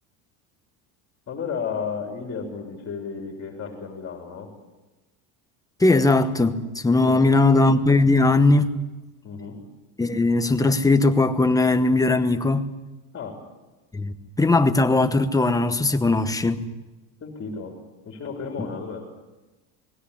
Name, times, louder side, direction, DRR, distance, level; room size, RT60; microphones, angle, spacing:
voice 1, 1.3-4.5 7.0-7.2 9.2-9.6 13.1-13.4 17.2-17.8 18.1-19.1, left 5 dB, 25° left, 3 dB, 3.6 m, -33 dB
voice 2, 5.8-8.7 10.0-12.6 13.9-16.6, left 2 dB, 5° left, 9 dB, 1.0 m, -19 dB
20.0 x 16.5 x 10.0 m, 1.1 s
supercardioid pair, 140°, 48 cm